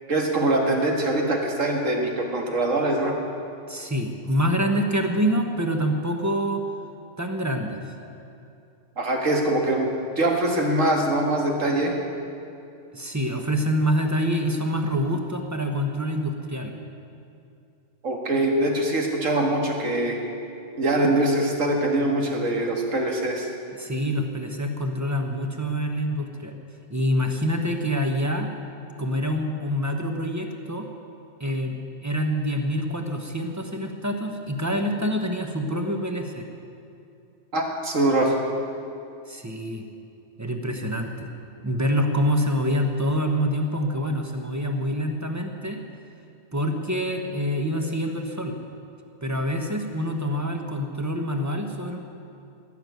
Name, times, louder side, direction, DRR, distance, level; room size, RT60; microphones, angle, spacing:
voice 1, 0.1-3.2 9.0-9.9 10.2-11.9 18.0-20.2 20.8-23.5 37.5-38.4, right 1 dB, 75° right, 1 dB, 2.1 m, -23 dB
voice 2, 3.7-6.6 7.2-7.8 12.9-16.7 23.7-26.5 26.9-28.5 29.0-30.9 31.4-31.8 32.0-36.5 39.3-39.9 40.4-41.3 41.6-45.8 46.5-48.6 49.2-52.0, equal, 15° right, 4 dB, 1.0 m, -26 dB
18.0 x 6.8 x 9.3 m, 2.6 s
omnidirectional pair, 1.3 m